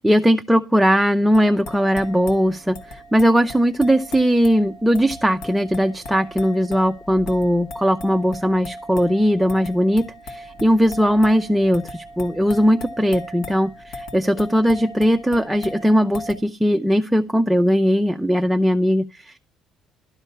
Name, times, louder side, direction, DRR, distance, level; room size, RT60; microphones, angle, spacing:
voice 1, 0.0-19.4, equal, 5° right, 6 dB, 0.5 m, -19 dB
sound 1, 1.3-16.3, left 1 dB, 70° left, 1.7 m, -38 dB
12.0 x 4.3 x 8.2 m, 0.30 s
cardioid pair, 100°, 0 cm